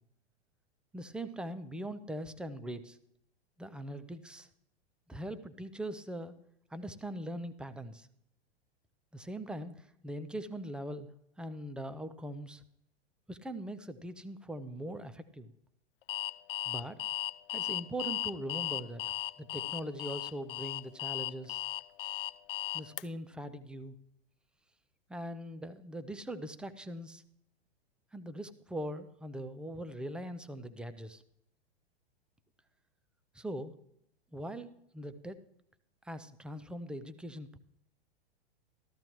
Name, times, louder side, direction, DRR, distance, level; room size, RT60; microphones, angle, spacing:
voice 1, 0.9-3.0 3.6-4.5 5.1-6.4 6.7-8.1 9.1-11.1 11.4-12.6 13.3-15.5 16.7-17.0 17.5-19.0 19.4-21.6 22.7-23.9 25.1-27.2 28.1-31.2 33.3-33.7 34.3-35.4 36.0-37.6, right 1 dB, 5° right, 11 dB, 0.5 m, -41 dB
Alarm, 16.1-23.0, left 15 dB, 60° left, 0.5 m, -36 dB
13.5 x 13.5 x 3.0 m, 0.75 s
figure-of-eight pair, 100°, 31 cm